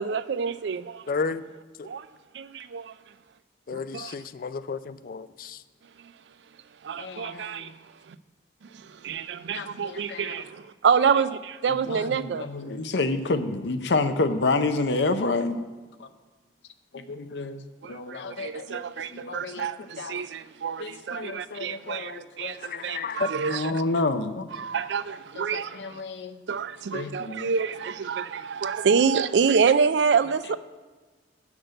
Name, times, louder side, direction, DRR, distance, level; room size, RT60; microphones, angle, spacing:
voice 1, 0.0-1.0 1.8-2.1 2.3-2.9 3.7-4.1 6.8-7.7 8.1-8.2 8.8-12.5 17.8-22.1 22.4-22.6 22.8-23.7 24.6-26.0 26.5-30.6, right 6 dB, 80° right, 0.4 m, -27 dB
voice 2, 1.1-1.4 1.8-1.9 3.7-5.6 22.6-23.3, left 4 dB, 50° left, 0.4 m, -32 dB
voice 3, 7.0-7.7 9.5-10.4 11.7-15.6 16.0-16.1 16.9-17.6 17.9-20.2 20.8-23.1 23.3-24.5 25.4-26.4 26.9-27.5, left 3 dB, 80° left, 0.7 m, -30 dB
8.9 x 6.0 x 6.6 m
head